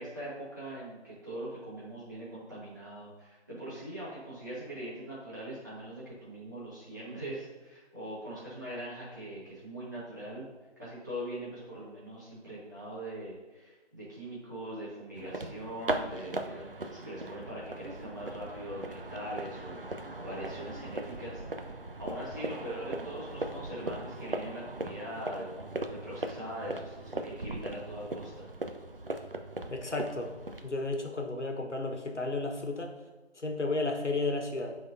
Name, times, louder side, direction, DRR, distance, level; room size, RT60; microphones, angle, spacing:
voice 1, 0.0-10.5 10.8-28.5, right 1 dB, 15° right, -10 dB, 1.3 m, -42 dB
sound 1, 15.2-30.7, right 2 dB, 55° right, 0.5 m, -39 dB
voice 2, 29.7-30.3 30.6-32.9 33.4-34.8, left 2 dB, 90° left, 3 dB, 1.2 m, -33 dB
11.0 x 3.7 x 2.6 m, 1.2 s
figure-of-eight pair, 170°, 34 cm